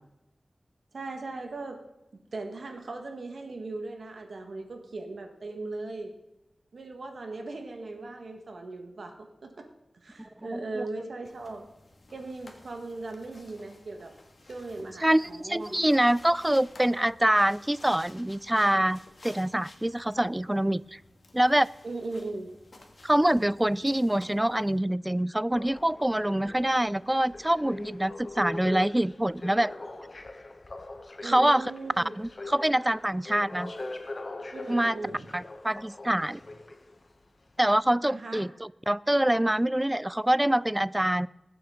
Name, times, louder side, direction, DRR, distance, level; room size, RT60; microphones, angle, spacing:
voice 1, 0.9-1.8 2.3-6.1 6.7-9.7 9.9-11.7 12.1-14.1 14.5-15.7 21.8-22.5 31.2-32.1 34.5-35.3 38.1-38.4, right 3 dB, 85° right, 4 dB, 1.5 m, -38 dB
voice 2, 10.2-10.8 15.0-21.0 21.3-21.7 23.0-29.7 31.2-31.7 32.0-33.7 34.7-35.0 35.3-36.4 37.6-41.3, right 1 dB, 15° right, 20 dB, 0.3 m, -25 dB
sound 1, 11.2-24.8, left 2 dB, 65° left, 1.8 m, -54 dB
sound 2, 25.5-37.1 37.8-37.9, left 2 dB, 50° left, 1.0 m, -42 dB
21.0 x 7.9 x 3.8 m, 0.95 s
wide cardioid pair, 55°, 0 cm